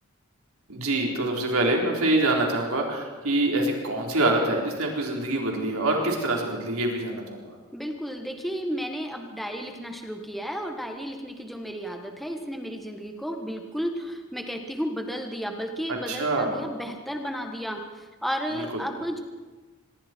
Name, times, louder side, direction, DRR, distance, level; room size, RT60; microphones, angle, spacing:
voice 1, 0.7-7.6 15.9-16.6 18.5-18.7, right 2 dB, 80° right, 0 dB, 4.1 m, -25 dB
voice 2, 7.7-19.2, equal, ahead, 3 dB, 1.5 m, -33 dB
26.0 x 22.0 x 4.6 m, 1.3 s
head